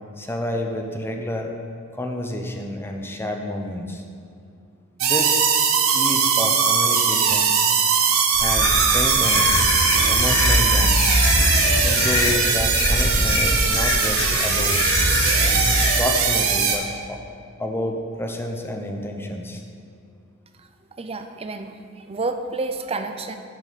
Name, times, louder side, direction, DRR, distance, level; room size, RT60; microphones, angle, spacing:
voice 1, 0.2-1.5 1.9-4.0 5.0-5.4 5.9-7.5 8.3-9.6 10.1-11.2 11.8-14.8 16.0-17.2 17.6-19.6, left 1 dB, 10° left, 3 dB, 0.7 m, -29 dB
sound 1, 5.0-16.8, right 6 dB, 75° right, 1.0 m, -20 dB
sound 2, 8.3-16.0, left 2 dB, 90° left, 1.5 m, -22 dB
voice 2, 21.0-21.8 22.1-23.4, right 3 dB, 30° right, 7 dB, 0.5 m, -29 dB
10.0 x 7.5 x 4.2 m, 2.4 s
head